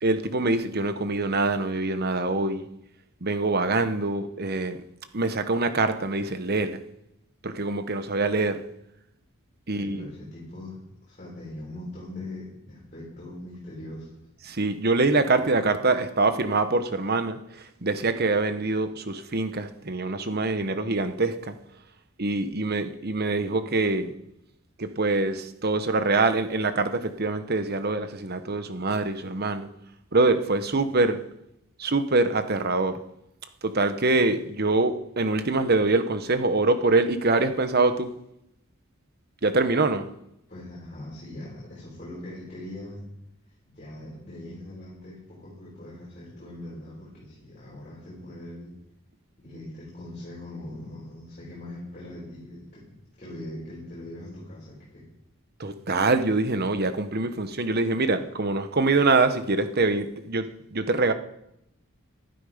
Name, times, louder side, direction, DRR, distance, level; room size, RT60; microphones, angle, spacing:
voice 1, 0.0-2.7 3.2-4.8 5.1-6.8 7.4-8.6 9.7-10.1 14.4-21.5 22.2-24.1 24.8-29.7 30.1-31.2 31.8-32.9 33.6-38.1 39.4-40.1 55.6-61.1, right 3 dB, 45° right, 9 dB, 1.1 m, -24 dB
voice 2, 9.7-10.8 11.1-14.1 15.4-15.5 40.5-43.0 43.7-48.7 49.4-52.8 53.2-55.0, left 1 dB, 35° left, -7 dB, 6.5 m, -41 dB
20.0 x 12.0 x 5.1 m, 0.82 s
head